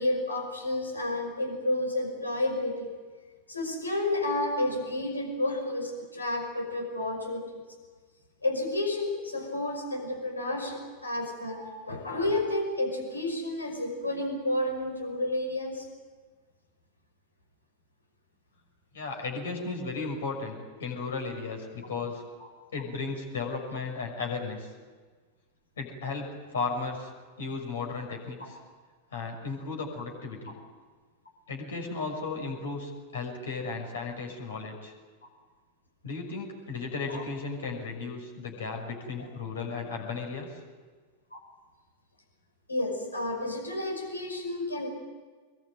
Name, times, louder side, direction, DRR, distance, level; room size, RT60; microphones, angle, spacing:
voice 1, 0.0-2.9 3.5-7.6 8.4-15.9 28.4-28.5 37.1-37.2 41.3-41.4 42.7-44.9, left 1 dB, 80° left, 3 dB, 5.5 m, -31 dB
voice 2, 18.9-22.2 22.7-24.7 25.8-27.1 27.4-28.6 29.1-30.5 31.5-34.9 36.0-40.6, left 4 dB, 65° left, 2 dB, 6.3 m, -35 dB
24.5 x 21.5 x 9.0 m, 1.5 s
figure-of-eight pair, 90°, 0 cm